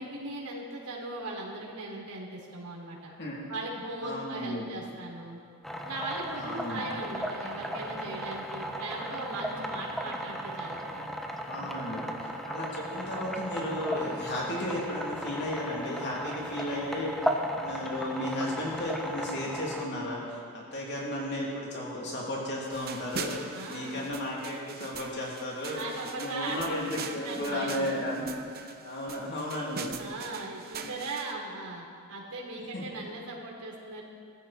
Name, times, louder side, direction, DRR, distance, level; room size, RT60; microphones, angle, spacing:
voice 1, 0.0-3.1 3.5-5.4 5.8-11.2 11.7-12.2 23.5-24.1 25.7-27.9 30.0-31.8 32.1-34.0, right 2 dB, 80° right, -2 dB, 3.8 m, -38 dB
voice 2, 3.1-3.4 4.0-4.7 6.3-6.8 11.5-17.3 17.6-25.8 26.2-28.2 28.8-30.0 30.8-30.9 32.7-32.8, left 1 dB, 50° left, -4 dB, 3.2 m, -34 dB
sound 1, 5.6-19.9, equal, ahead, 1.1 m, -36 dB
sound 2, 22.7-31.3, right 5 dB, 45° right, 1.0 m, -42 dB
21.5 x 14.5 x 4.4 m, 2.3 s
head